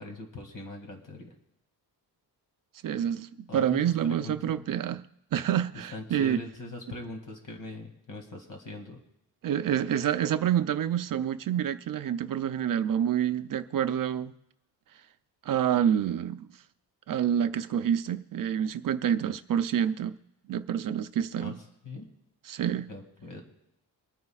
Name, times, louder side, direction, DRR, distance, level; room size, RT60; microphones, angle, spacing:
voice 1, 0.0-1.3 3.5-4.6 5.9-9.0 21.4-21.6 21.8-22.1 22.9-23.4, left 2 dB, 50° left, 2.4 m, -41 dB
voice 2, 2.8-5.0 5.3-6.4 9.4-14.3 15.5-16.5 17.1-20.1 20.5-21.6 22.5-22.9, right 9 dB, 55° right, 0.6 m, -27 dB
25.0 x 9.5 x 2.4 m
cardioid pair, 120°, 40 cm